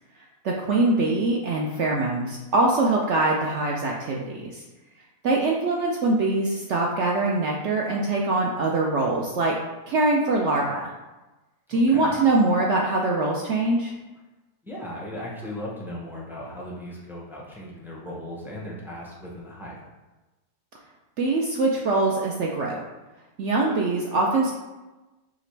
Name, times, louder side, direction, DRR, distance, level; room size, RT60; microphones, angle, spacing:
voice 1, 0.4-4.6 5.2-9.6 9.9-10.9 11.7-13.9 21.2-22.8 23.4-24.5, right 2 dB, 70° right, -2 dB, 0.7 m, -23 dB
voice 2, 11.7-12.2 14.6-19.8, left 1 dB, 5° right, -5 dB, 0.4 m, -37 dB
4.9 x 2.9 x 3.3 m, 1.1 s
omnidirectional pair, 1.7 m